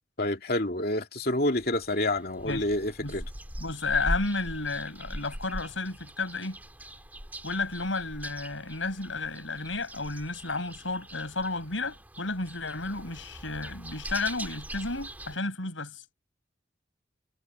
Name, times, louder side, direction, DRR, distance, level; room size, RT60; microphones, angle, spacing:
voice 1, 0.2-3.3, left 1 dB, 50° left, 2.7 m, -28 dB
sound 1, 1.6-15.4, right 1 dB, 10° right, 2.5 m, -41 dB
voice 2, 3.6-6.6 7.4-16.0, left 3 dB, 90° left, 7.0 m, -32 dB
head